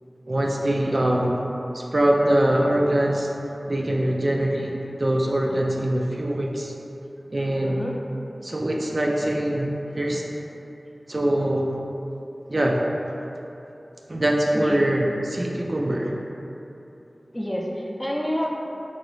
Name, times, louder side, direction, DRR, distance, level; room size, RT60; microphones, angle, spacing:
voice 1, 0.3-1.4 1.7-3.3 3.7-6.7 7.3-7.8 8.4-10.3 11.1-11.8 12.5-12.8 14.1-16.2, right 1 dB, 55° right, -1 dB, 0.3 m, -23 dB
voice 2, 7.6-7.9 14.1-14.2 14.5-14.8 17.3-18.5, equal, 10° left, -2 dB, 0.5 m, -28 dB
3.9 x 3.0 x 3.1 m, 2.9 s
wide cardioid pair, 50°, 0 cm